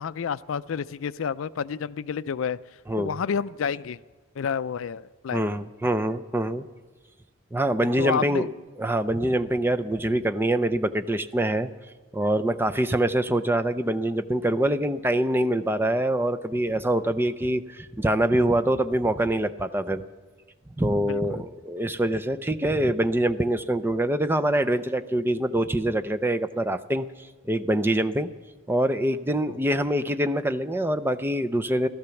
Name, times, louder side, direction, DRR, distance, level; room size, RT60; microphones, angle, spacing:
voice 1, 0.0-2.6 3.0-4.0 4.4-5.4 7.8-8.5 21.1-21.4 29.5-29.6, left 6 dB, 70° left, 16 dB, 0.4 m, -30 dB
voice 2, 5.3-6.6 7.5-8.5 8.8-11.7 12.1-20.0 20.8-27.1 27.5-28.3 28.7-31.9, right 1 dB, 10° right, 10 dB, 0.5 m, -24 dB
15.0 x 13.0 x 7.0 m, 1.4 s
head